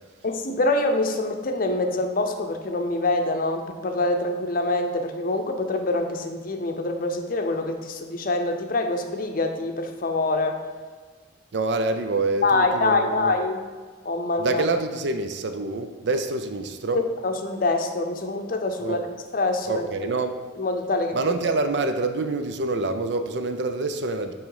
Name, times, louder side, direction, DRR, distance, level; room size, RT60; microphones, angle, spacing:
voice 1, 0.2-10.6 12.4-13.6 14.0-14.6 16.9-19.0 19.3-19.9 20.6-21.2, left 2 dB, 50° left, 5 dB, 0.6 m, -25 dB
voice 2, 11.5-13.3 14.4-17.0 18.8-19.0 19.7-20.4 21.1-24.3, right 3 dB, 60° right, 8 dB, 0.5 m, -26 dB
8.9 x 3.1 x 4.8 m, 1.5 s
head